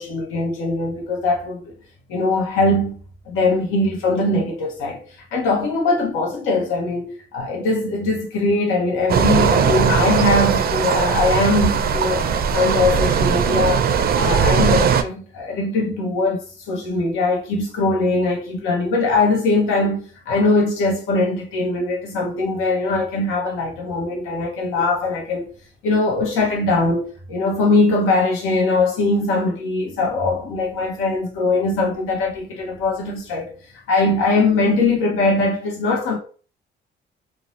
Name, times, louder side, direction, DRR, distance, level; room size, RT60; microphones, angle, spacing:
voice 1, 0.0-1.7 2.1-3.0 3.3-13.9 14.1-25.5 25.8-36.2, left 2 dB, 90° left, 0.7 m, -21 dB
sound 1, 9.1-15.0, right 7 dB, 50° right, 0.4 m, -19 dB
2.6 x 2.0 x 3.0 m
cardioid pair, 90°, 20 cm